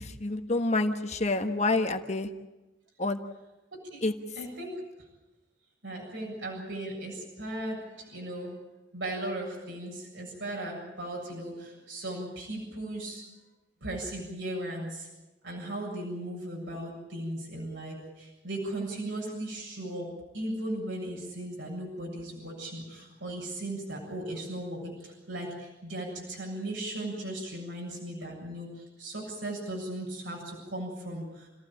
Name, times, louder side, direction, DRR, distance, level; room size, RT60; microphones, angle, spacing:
voice 1, 0.0-2.3 3.0-3.2 4.0-4.1, left 2 dB, 40° left, 6 dB, 1.3 m, -28 dB
voice 2, 4.4-4.7 5.8-8.5 8.9-13.2 13.8-15.1 15.4-20.1 20.3-31.5, right 1 dB, 80° right, -2 dB, 7.5 m, -37 dB
28.5 x 15.5 x 8.8 m, 1.0 s
head